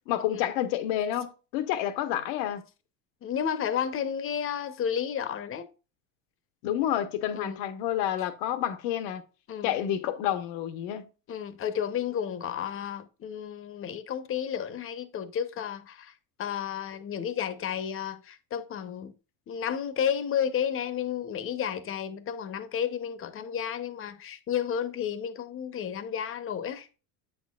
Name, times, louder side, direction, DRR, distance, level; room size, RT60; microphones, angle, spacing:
voice 1, 0.1-2.6 6.6-9.2 9.6-11.1, left 11 dB, 80° left, 1.0 m, -29 dB
voice 2, 3.2-5.7 7.3-7.6 9.5-9.7 11.3-16.1 16.4-19.1 19.5-27.0, left 8 dB, 35° left, 0.8 m, -32 dB
7.8 x 6.4 x 2.3 m
cardioid pair, 135°, 39 cm